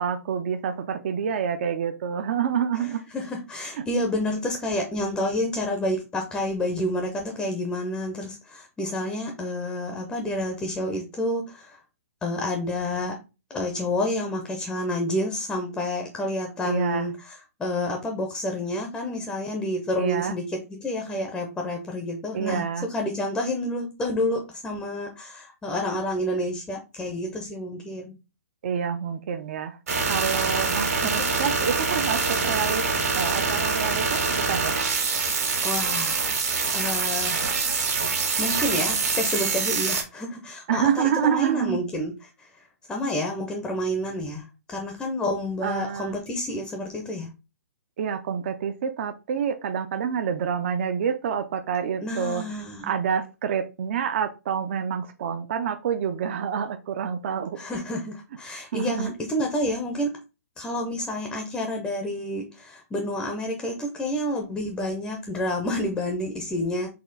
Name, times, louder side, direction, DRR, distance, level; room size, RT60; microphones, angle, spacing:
voice 1, 0.0-3.0 16.6-17.1 20.0-20.3 22.3-22.9 28.6-29.8 30.1-32.8 33.1-34.8 40.7-41.8 45.6-46.1 48.0-52.4 52.8-57.6 58.7-59.1, right 7 dB, 45° right, 7 dB, 0.4 m, -27 dB
voice 2, 2.7-11.8 12.2-13.2 13.5-20.4 20.7-28.1 30.8-31.3 35.6-36.4 36.7-37.4 38.4-47.3 52.0-52.9 57.6-60.2 60.6-66.9, left 1 dB, 5° left, 2 dB, 0.5 m, -29 dB
sound 1, 29.9-40.0, right 4 dB, 70° right, 1.7 m, -25 dB
4.2 x 2.3 x 3.9 m, 0.29 s
hypercardioid pair, 155°, 9 cm